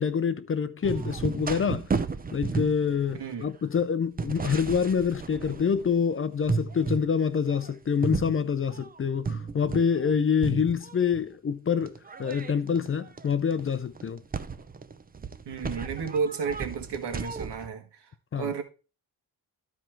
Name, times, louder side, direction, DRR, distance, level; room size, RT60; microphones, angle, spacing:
voice 1, 0.0-1.9 2.3-14.2 18.3-18.5, left 6 dB, 35° left, 0.5 m, -26 dB
sound 1, 0.8-6.0 6.4-7.1 7.5-10.1 10.4-11.2 11.8-17.7, right 4 dB, 25° right, 0.6 m, -34 dB
voice 2, 3.2-3.5 15.5-18.0 18.4-18.6, right 5 dB, 85° right, 1.9 m, -32 dB
12.5 x 4.6 x 4.4 m
wide cardioid pair, 165°, 40 cm